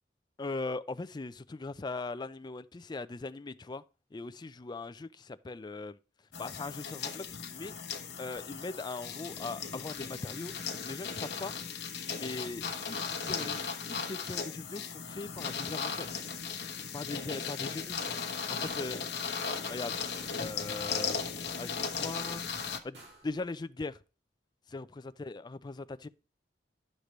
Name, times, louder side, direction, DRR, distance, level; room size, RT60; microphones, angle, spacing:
voice 1, 0.4-3.8 4.1-6.0 6.4-7.7 8.2-10.6 10.8-11.5 12.1-13.6 13.9-16.1 16.9-18.0 18.5-19.1 19.7-20.0 20.4-21.2 21.6-22.4 22.8-24.0 24.7-26.1, left 3 dB, 25° left, 0.4 m, -40 dB
sound 1, 6.3-22.8, left 6 dB, 70° left, 1.0 m, -37 dB
sound 2, 18.6-19.1 20.1-20.6 20.9-21.3 22.9-23.4, right 2 dB, 80° right, 2.3 m, -53 dB
11.5 x 6.6 x 3.1 m
head